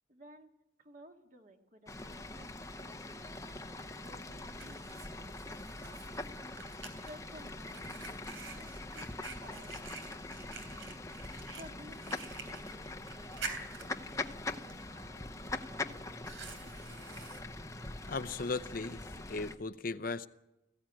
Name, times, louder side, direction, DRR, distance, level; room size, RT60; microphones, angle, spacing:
voice 1, 0.1-2.5 2.8-6.4 7.1-17.0, equal, 40° right, 2.1 m, -57 dB
Fowl / Bird, 1.9-19.5, left 2 dB, 15° left, 0.8 m, -43 dB
Fire, 3.9-18.8, right 4 dB, 90° right, 3.3 m, -49 dB
voice 2, 18.0-20.3, left 3 dB, 45° left, 0.6 m, -37 dB
20.5 x 15.5 x 9.1 m
head